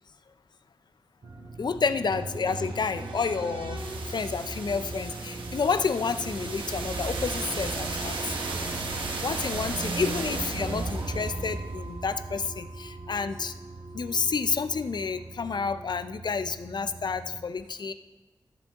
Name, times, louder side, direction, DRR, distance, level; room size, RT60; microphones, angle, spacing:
sound 1, 1.2-17.4, right 2 dB, 65° right, 1.8 m, -42 dB
voice 1, 1.6-3.8 4.1-8.2 9.2-13.5 13.9-17.9, left 5 dB, 60° left, 12 dB, 0.5 m, -30 dB
sound 2, 2.0-13.9, right 3 dB, 85° right, 1.2 m, -35 dB
13.5 x 7.4 x 3.6 m, 1.2 s
wide cardioid pair, 90°, 8 cm